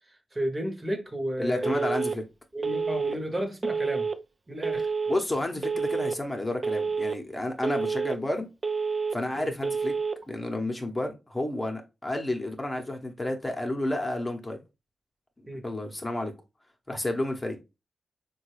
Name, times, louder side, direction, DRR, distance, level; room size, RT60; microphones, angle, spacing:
voice 1, 0.1-1.9 2.5-4.1 4.5-4.9 9.3-9.5 15.5-15.6, right 1 dB, 30° right, 1.0 m, -33 dB
voice 2, 1.4-2.2 5.1-8.5 9.1-9.9 10.3-14.6 15.6-16.3 16.9-17.6, left 1 dB, 25° left, 0.8 m, -31 dB
Telephone, 1.6-2.2 2.6-3.2 3.6-4.2 4.6-5.2 5.6-6.2 6.6-7.2 7.6-8.2 8.6-9.2 9.6-10.2, right 5 dB, 45° right, 0.3 m, -28 dB
3.6 x 2.3 x 3.2 m
cardioid pair, 45°, 0 cm